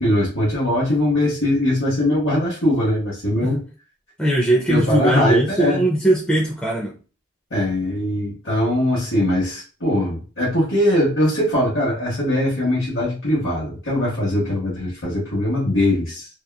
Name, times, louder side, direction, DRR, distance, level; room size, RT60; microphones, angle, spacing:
voice 1, 0.0-3.6 4.7-5.8 7.5-16.3, left 1 dB, 80° left, -6 dB, 1.0 m, -21 dB
voice 2, 4.2-7.0, right 1 dB, 5° left, -2 dB, 0.4 m, -20 dB
2.8 x 2.3 x 2.2 m, 0.37 s
head